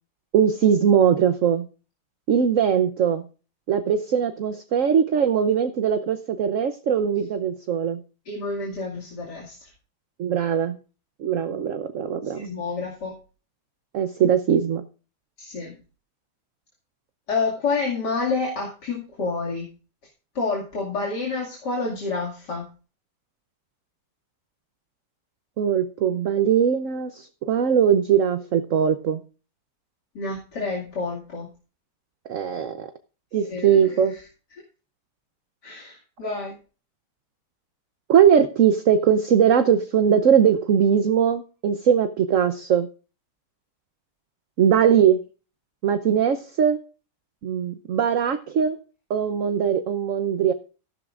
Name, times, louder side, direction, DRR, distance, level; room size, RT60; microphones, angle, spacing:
voice 1, 0.3-1.7 2.3-3.2 3.7-8.0 10.2-10.8 11.2-12.5 13.9-14.8 25.6-29.2 32.3-32.9 33.3-34.1 38.1-42.9 44.6-45.2 45.8-46.8 47.4-48.8 49.1-50.5, right 8 dB, 55° right, 9 dB, 1.0 m, -20 dB
voice 2, 8.2-9.7 12.2-13.1 15.4-15.7 17.3-19.7 20.3-22.7 30.1-31.5 33.5-34.2 35.6-36.5, left 4 dB, 75° left, -2 dB, 3.0 m, -29 dB
14.0 x 12.0 x 2.5 m, 0.35 s
omnidirectional pair, 1.8 m